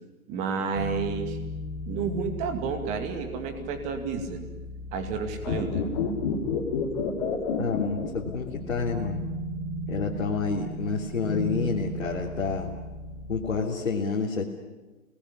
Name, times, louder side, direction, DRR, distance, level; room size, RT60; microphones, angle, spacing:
voice 1, 0.3-1.4 1.9-4.4 4.9-5.8, right 6 dB, 15° right, 6 dB, 2.3 m, -31 dB
sound 1, 0.7-13.6, left 1 dB, 5° left, 2.8 m, -37 dB
sound 2, 5.4-8.8 9.0-9.1, left 6 dB, 30° left, 3.2 m, -29 dB
voice 2, 7.6-9.2 9.9-12.7 13.3-14.4, left 5 dB, 55° left, -2 dB, 3.3 m, -29 dB
29.0 x 20.5 x 9.8 m, 1.2 s
figure-of-eight pair, 145°, 43 cm